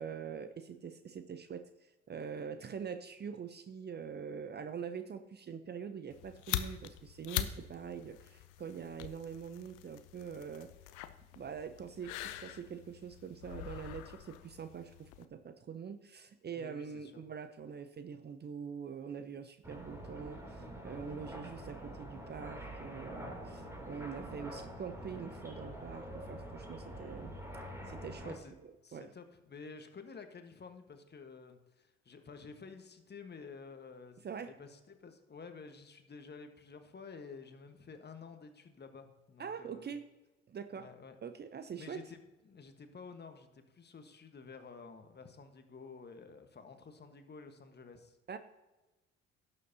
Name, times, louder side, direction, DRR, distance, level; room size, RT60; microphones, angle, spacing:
voice 1, 0.0-10.7 11.4-27.3 27.9-28.3 28.6-29.1 34.2-34.5 39.4-40.0 40.5-40.9 41.2-42.0 48.3-48.4, right 6 dB, 30° right, 11 dB, 0.7 m, -44 dB
sound 1, 6.1-15.3, left 13 dB, 60° left, 0.7 m, -43 dB
voice 2, 16.5-17.2 28.2-28.5 28.8-39.9 40.8-41.2 41.8-42.2 42.4-48.2, left 5 dB, 30° left, 7 dB, 1.4 m, -51 dB
sound 2, 19.6-28.4, equal, 10° right, 3.0 m, -46 dB
17.5 x 6.8 x 2.8 m, 1.1 s
figure-of-eight pair, 50°, 34 cm